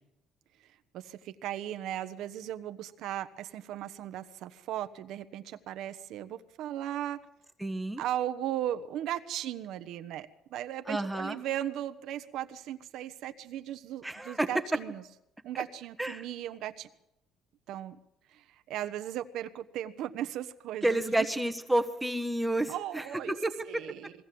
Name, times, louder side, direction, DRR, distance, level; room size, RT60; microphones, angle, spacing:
voice 1, 0.9-7.2 8.0-15.0 15.4-16.9 17.7-18.0 18.3-21.3 22.7-23.4 23.6-24.1, right 12 dB, 70° right, 9 dB, 1.1 m, -37 dB
voice 2, 7.6-8.0 10.9-11.4 14.0-14.5 15.5-15.6 16.0-16.2 20.8-23.8, right 1 dB, 5° right, 7 dB, 1.3 m, -30 dB
22.0 x 16.5 x 7.8 m, 0.84 s
cardioid pair, 135°, 0 cm